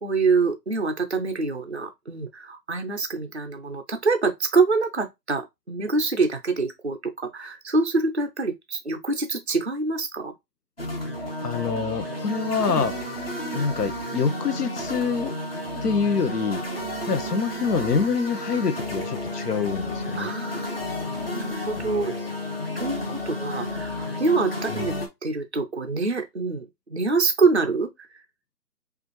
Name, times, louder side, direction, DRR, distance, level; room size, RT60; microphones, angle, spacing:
voice 1, 0.0-10.3 12.7-12.9 20.1-22.1 22.8-25.0 25.2-27.9, right 4 dB, 45° right, 0.4 m, -25 dB
sound 1, 10.8-25.1, left 1 dB, 35° left, 0.9 m, -32 dB
voice 2, 11.4-12.9 13.5-15.4 15.8-16.6 17.1-20.3 24.7-24.9, left 5 dB, 65° left, 0.9 m, -26 dB
5.0 x 2.5 x 3.0 m
hypercardioid pair, 180°, 49 cm